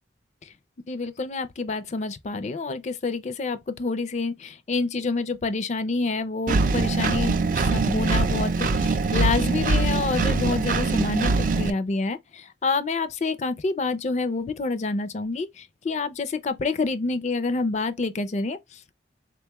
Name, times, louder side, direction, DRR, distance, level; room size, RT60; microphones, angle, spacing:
voice 1, 0.9-18.9, left 3 dB, 40° left, 0.4 m, -28 dB
Engine, 6.5-11.7, right 3 dB, 45° right, 0.3 m, -23 dB
3.9 x 2.2 x 2.9 m
head